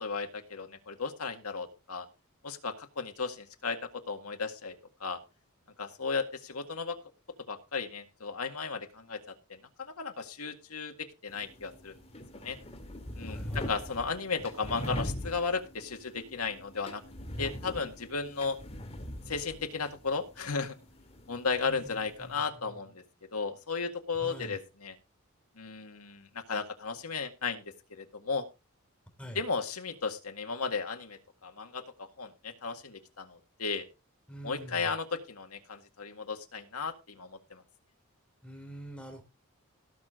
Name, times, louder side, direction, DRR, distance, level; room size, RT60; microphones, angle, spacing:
voice 1, 0.0-2.1 2.4-4.8 5.0-5.2 5.8-7.0 7.5-9.2 9.8-11.9 12.4-12.6 13.2-17.0 17.4-18.6 19.3-20.8 21.3-23.0 23.3-25.0 25.6-27.6 27.9-28.4 29.3-33.9 34.4-37.6, left 4 dB, 90° left, 5 dB, 1.9 m, -35 dB
sound 1, 11.3-22.4, equal, 30° left, 2.2 m, -42 dB
voice 2, 13.3-13.7 21.6-22.8 24.2-24.6 29.2-29.4 34.3-34.9 38.4-39.2, equal, 5° left, 4 dB, 3.1 m, -45 dB
17.5 x 6.8 x 3.7 m, 0.28 s
head